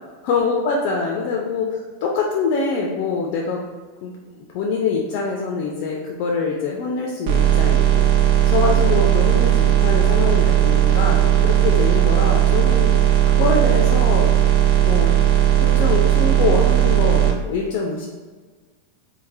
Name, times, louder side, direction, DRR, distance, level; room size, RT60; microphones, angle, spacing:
voice 1, 0.2-3.6 4.0-14.3 14.8-15.2 15.6-18.1, left 4 dB, 45° left, 0 dB, 0.3 m, -24 dB
sound 1, 7.3-17.3, right 11 dB, 50° right, 0.3 m, -16 dB
3.2 x 2.1 x 2.6 m, 1.4 s
figure-of-eight pair, 90°, 0 cm